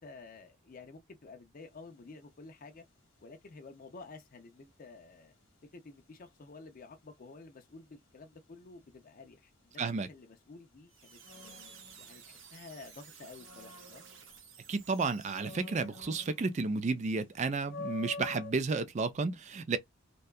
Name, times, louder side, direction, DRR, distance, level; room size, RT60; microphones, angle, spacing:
voice 1, 0.0-2.8 3.2-5.3 5.7-11.6 12.0-14.0, left 3 dB, 45° left, 0.5 m, -51 dB
sound 1, 1.6-1.9 11.2-12.7 13.1-14.7 15.2-16.8 17.1-17.2 17.6-18.5, left 3 dB, 70° left, 0.8 m, -47 dB
voice 2, 9.8-10.1 14.7-19.8, right 4 dB, 35° right, 0.4 m, -32 dB
sound 2, 10.9-16.1, right 6 dB, 75° right, 0.8 m, -54 dB
2.7 x 2.2 x 2.3 m
head